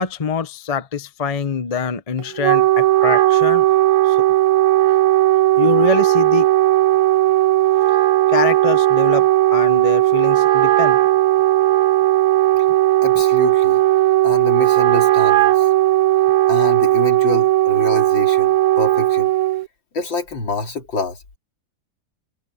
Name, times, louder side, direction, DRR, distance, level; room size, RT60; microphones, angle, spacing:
voice 1, 0.0-3.6 4.0-4.2 5.6-6.5 8.3-11.0, left 5 dB, 30° left, 0.7 m, -24 dB
Wind instrument woodwind instrument, 2.2-19.7, right 15 dB, 70° right, 0.9 m, -16 dB
voice 2, 13.0-13.8 14.2-15.7 16.5-19.3 19.9-21.4, left 3 dB, 75° left, 3.7 m, -26 dB
omnidirectional pair, 2.1 m